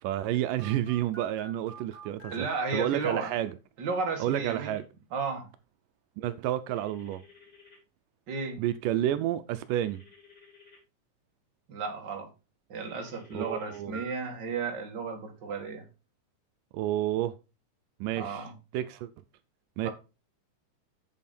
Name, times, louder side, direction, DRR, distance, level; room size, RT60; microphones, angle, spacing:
voice 1, 0.0-2.5 2.7-3.6 4.2-4.9 6.2-7.2 8.6-10.0 13.3-14.0 16.7-17.4 18.0-18.5 18.7-19.1 19.8-19.9, right 12 dB, 85° right, 2.3 m, -30 dB
Telephone, 0.6-3.1 4.1-4.8 6.8-7.8 9.8-10.8 12.8-14.1, right 2 dB, 10° left, 4.4 m, -50 dB
voice 2, 2.3-3.3 3.8-4.7 5.1-5.5 8.3-8.6 11.7-12.3 12.7-15.8 18.2-18.5 19.8-19.9, right 4 dB, 35° right, 2.3 m, -33 dB
8.2 x 7.5 x 4.3 m
omnidirectional pair, 3.8 m